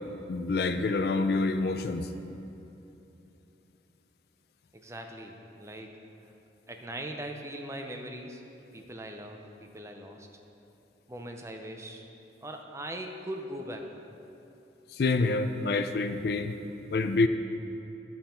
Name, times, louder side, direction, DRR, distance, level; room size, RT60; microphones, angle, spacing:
voice 1, 0.3-2.1 14.9-16.5 16.9-17.3, left 3 dB, 60° left, 9 dB, 0.4 m, -27 dB
voice 2, 4.7-6.3 6.7-8.4 8.7-10.3 11.1-12.0 12.4-14.0, right 1 dB, 15° right, 3 dB, 0.5 m, -40 dB
11.0 x 5.4 x 4.4 m, 3.0 s
head